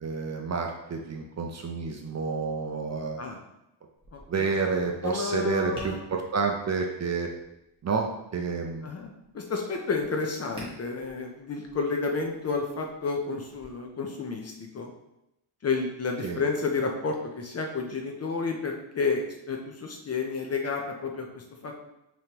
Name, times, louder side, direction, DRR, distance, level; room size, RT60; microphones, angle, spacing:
voice 1, 0.0-3.2 4.3-7.3 7.8-8.9 16.2-16.4, right 4 dB, 40° right, 2 dB, 0.4 m, -29 dB
Tap, 3.9-13.6, right 1 dB, 10° right, 1.2 m, -51 dB
voice 2, 4.1-4.7 5.0-6.0 8.8-14.9 15.6-21.7, left 4 dB, 35° left, 2 dB, 0.5 m, -31 dB
5.0 x 3.0 x 2.9 m, 0.87 s
wide cardioid pair, 165°, 45 cm